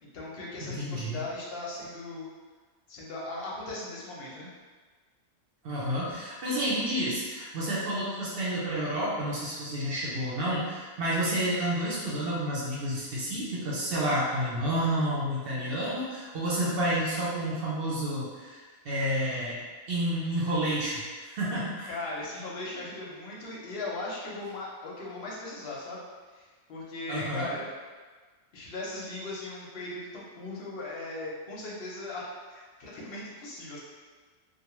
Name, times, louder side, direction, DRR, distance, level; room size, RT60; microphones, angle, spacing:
voice 1, 0.0-2.2 2.9-4.5 21.9-26.0 26.3-27.7 28.5-33.8, left 2 dB, 60° left, -5 dB, 0.8 m, -38 dB
voice 2, 0.7-1.2 5.6-19.6 19.9-21.0 21.3-21.9 27.1-27.5, right 1 dB, 60° right, -6 dB, 0.7 m, -30 dB
2.3 x 2.2 x 2.9 m, 1.4 s
omnidirectional pair, 1.3 m